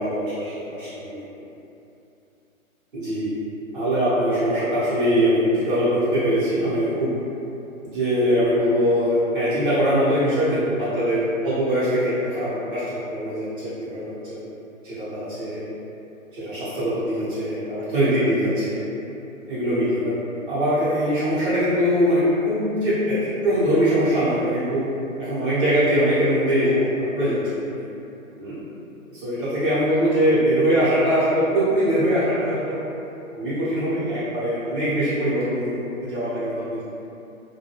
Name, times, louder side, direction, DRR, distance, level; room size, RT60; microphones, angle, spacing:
voice 1, 0.0-1.2 2.9-3.3 3.7-7.1 7.8-14.4 14.8-15.6 16.3-18.8 19.5-20.1 20.5-24.8 25.2-26.9 27.1-27.9 28.4-28.6 29.1-32.8 33.3-36.8, equal, 40° right, -13 dB, 0.9 m, -22 dB
2.2 x 2.1 x 2.9 m, 2.8 s
figure-of-eight pair, 135°, 42 cm